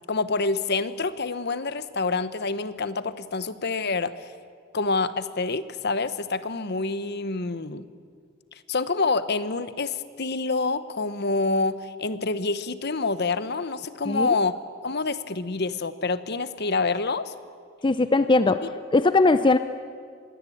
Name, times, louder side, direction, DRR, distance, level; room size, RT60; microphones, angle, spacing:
voice 1, 0.0-4.1 4.7-7.8 8.7-14.6 14.8-17.3, left 3 dB, 55° left, 13 dB, 1.1 m, -27 dB
voice 2, 17.8-18.6 18.9-19.6, left 3 dB, 25° left, 11 dB, 0.6 m, -19 dB
26.0 x 21.5 x 8.6 m, 2.1 s
head